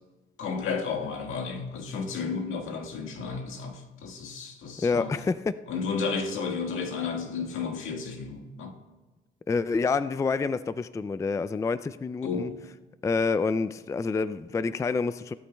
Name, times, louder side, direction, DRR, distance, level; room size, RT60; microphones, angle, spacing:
voice 1, 0.4-5.1 5.7-8.8 12.2-12.6, left 5 dB, 85° left, 3 dB, 1.7 m, -32 dB
voice 2, 4.8-5.6 9.5-12.5 13.0-15.3, left 4 dB, 15° left, 14 dB, 0.3 m, -27 dB
18.0 x 13.0 x 2.3 m, 1.2 s
cardioid pair, 105°, 20 cm